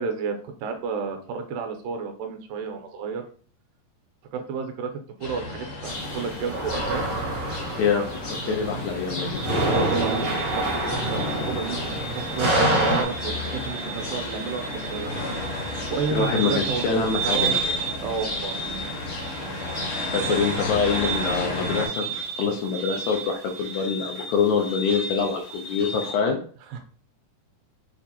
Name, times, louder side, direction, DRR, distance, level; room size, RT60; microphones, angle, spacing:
voice 1, 0.0-3.3 4.3-4.9 5.2-7.1 8.5-8.6 9.6-15.2 15.5-17.5 18.0-18.6 20.3-20.4 26.7-26.8, right 5 dB, 85° right, 5 dB, 2.3 m, -32 dB
sound 1, 5.2-21.9, left 2 dB, 55° left, 1.3 m, -33 dB
sound 2, 5.8-13.0, right 1 dB, 65° right, 0.8 m, -27 dB
voice 2, 7.8-9.4 16.1-17.6 20.0-22.0 22.3-26.4, left 5 dB, 75° left, 1 dB, 1.8 m, -25 dB
sound 3, 9.3-26.1, right 4 dB, 20° right, 0.3 m, -33 dB
6.6 x 2.5 x 2.8 m, 0.44 s
omnidirectional pair, 3.8 m